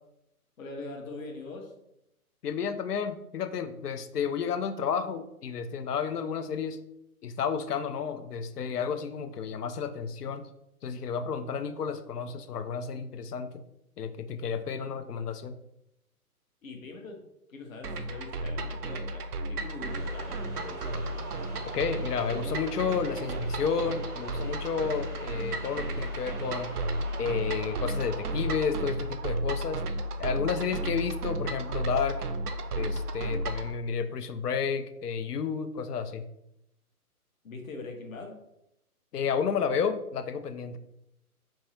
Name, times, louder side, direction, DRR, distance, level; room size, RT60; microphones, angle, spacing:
voice 1, 0.6-1.7 16.6-21.1 37.4-38.4, left 3 dB, 60° left, 2 dB, 0.9 m, -42 dB
voice 2, 2.4-6.8 7.2-10.4 10.8-13.5 14.0-15.5 21.7-26.7 27.2-29.8 30.2-32.2 32.8-36.2 39.1-40.8, left 6 dB, 90° left, 9 dB, 0.6 m, -31 dB
sound 1, 17.8-33.7, right 1 dB, 80° right, 0.6 m, -33 dB
sound 2, 19.9-30.1, right 2 dB, 10° right, 0.5 m, -44 dB
3.5 x 2.0 x 4.2 m, 0.83 s
figure-of-eight pair, 140°, 45 cm